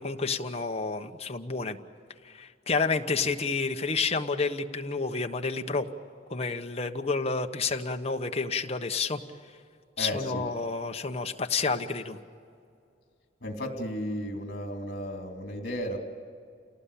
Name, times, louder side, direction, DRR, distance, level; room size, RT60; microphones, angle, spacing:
voice 1, 0.0-1.8 2.2-5.9 6.3-9.2 10.0-12.2, left 4 dB, 35° left, 5 dB, 1.1 m, -30 dB
voice 2, 10.0-10.5 13.4-16.0, equal, 55° left, 3 dB, 3.0 m, -34 dB
29.0 x 18.5 x 8.5 m, 2.4 s
head